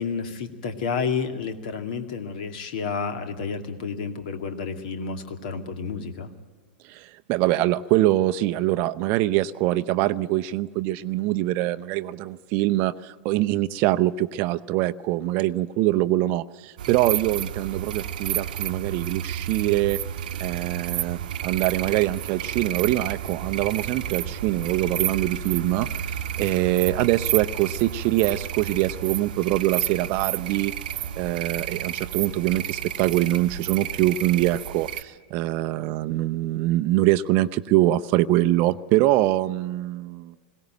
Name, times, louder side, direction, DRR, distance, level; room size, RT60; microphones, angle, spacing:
voice 1, 0.0-6.3, left 5 dB, 60° left, 8 dB, 2.2 m, -30 dB
voice 2, 6.8-20.0 20.4-25.9 26.4-30.7 31.2-40.3, right 15 dB, 40° right, 11 dB, 0.6 m, -24 dB
sound 1, 16.8-35.0, right 10 dB, 60° right, 0.9 m, -31 dB
sound 2, 19.9-35.1, right 2 dB, 25° left, 5.6 m, -56 dB
21.5 x 17.5 x 9.0 m, 1.4 s
figure-of-eight pair, 95°, 5 cm